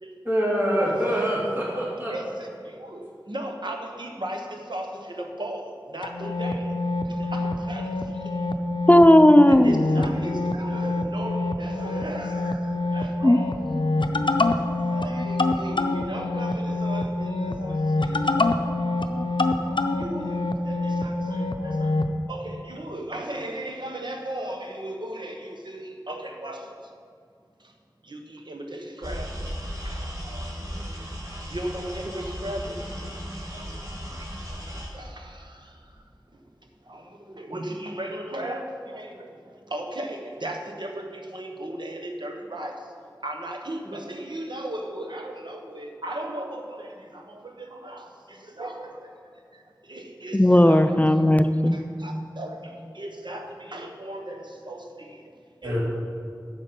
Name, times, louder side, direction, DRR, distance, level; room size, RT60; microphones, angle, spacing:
voice 1, 0.2-2.1 55.6-55.8, equal, 25° right, -6 dB, 2.6 m, -25 dB
voice 2, 2.1-6.7 7.1-7.9 9.5-13.5 14.5-14.6 14.9-18.8 20.0-22.0 22.3-26.7 28.1-29.4 29.8-30.5 31.5-32.8 33.5-33.8 34.9-35.5 36.9-39.3 39.7-42.8 43.2-49.0 49.9-51.0 51.6-55.2 55.6-55.8, right 1 dB, 70° right, 3 dB, 1.1 m, -36 dB
sound 1, 6.0-22.1, left 2 dB, 85° left, 0.5 m, -26 dB
voice 3, 8.9-9.8 13.2-13.4 50.3-51.8, left 1 dB, 20° left, 9 dB, 0.4 m, -15 dB
sound 2, 29.0-34.9, equal, 45° right, 2.4 m, -35 dB
9.9 x 7.3 x 5.3 m, 2.4 s
wide cardioid pair, 45°, 8 cm